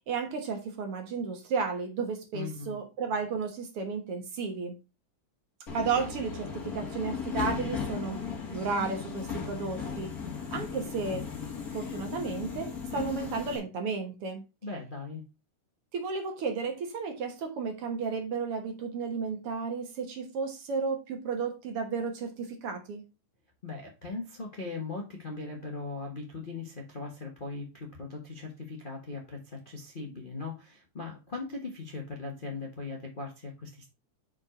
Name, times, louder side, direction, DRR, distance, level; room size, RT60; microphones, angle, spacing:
voice 1, 0.1-4.8 5.7-8.2 8.5-10.2 10.5-11.3 11.7-14.4 15.9-23.0, right 5 dB, 55° right, 1.9 m, -33 dB
voice 2, 2.3-2.8 14.6-15.2 23.6-33.9, left 3 dB, 70° left, 0.4 m, -39 dB
Subway metro underground, 5.7-13.6, left 6 dB, 30° left, 2.3 m, -36 dB
5.8 x 5.3 x 5.0 m
omnidirectional pair, 3.5 m